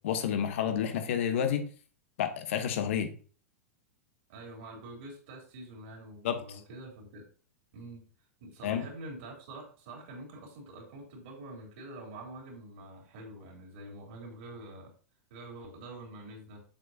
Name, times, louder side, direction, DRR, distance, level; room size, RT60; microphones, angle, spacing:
voice 1, 0.0-1.7 2.2-3.1 6.2-6.4 8.6-8.9, left 8 dB, 60° left, 7 dB, 1.1 m, -30 dB
voice 2, 4.3-7.3 7.7-8.1 8.4-14.9 15.3-16.6, right 2 dB, 50° right, 1 dB, 3.2 m, -46 dB
7.7 x 6.5 x 2.8 m, 0.40 s
figure-of-eight pair, 95°, 8 cm